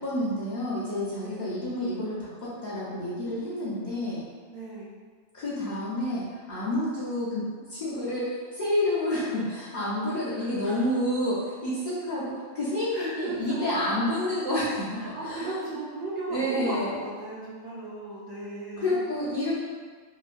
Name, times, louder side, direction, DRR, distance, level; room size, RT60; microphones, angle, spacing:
voice 1, 0.0-4.2 5.3-15.6 16.3-17.0 18.8-19.5, left 1 dB, 45° left, -10 dB, 0.7 m, -29 dB
voice 2, 4.5-4.9 10.3-10.9 12.9-14.1 14.9-19.0, right 2 dB, 65° right, -7 dB, 0.9 m, -36 dB
3.0 x 2.2 x 2.4 m, 1.5 s
omnidirectional pair, 1.2 m